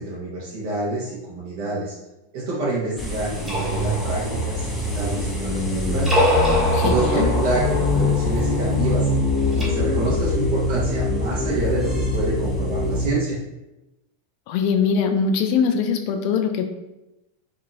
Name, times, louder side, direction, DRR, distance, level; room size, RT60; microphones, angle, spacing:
voice 1, 0.0-1.9 2.3-6.1 6.8-9.1 9.5-13.4, right 2 dB, 45° right, -7 dB, 0.7 m, -27 dB
sound 1, 3.0-13.1, left 2 dB, 10° left, 0.6 m, -23 dB
sound 2, 3.3-5.5 5.9-9.6, left 1 dB, 10° right, 1.0 m, -26 dB
voice 2, 6.7-7.3 14.5-16.6, left 6 dB, 45° left, 6 dB, 0.3 m, -22 dB
2.7 x 2.6 x 2.3 m, 0.98 s
figure-of-eight pair, 90°, 0 cm